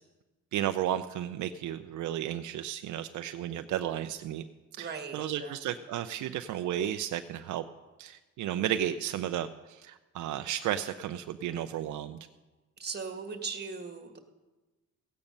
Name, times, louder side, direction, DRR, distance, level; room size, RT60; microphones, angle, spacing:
voice 1, 0.5-4.4 4.8-7.6 8.0-12.2, right 11 dB, 80° right, 9 dB, 0.6 m, -33 dB
voice 2, 4.8-5.6 12.8-14.2, right 5 dB, 35° right, 6 dB, 1.7 m, -39 dB
16.0 x 8.8 x 5.4 m, 1.2 s
cardioid pair, 90°, 30 cm